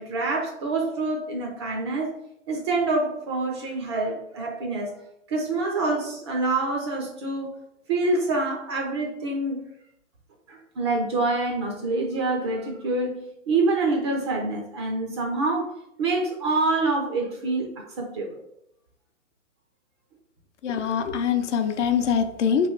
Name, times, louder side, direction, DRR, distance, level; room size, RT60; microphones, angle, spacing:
voice 1, 0.0-2.1 2.5-4.9 5.3-7.5 7.9-9.6 10.5-13.1 13.5-15.7 16.0-18.4, right 3 dB, 25° right, 1 dB, 0.4 m, -26 dB
voice 2, 20.6-22.7, left 7 dB, 65° left, 8 dB, 0.6 m, -23 dB
3.1 x 2.6 x 4.4 m, 0.80 s
hypercardioid pair, 135°, 39 cm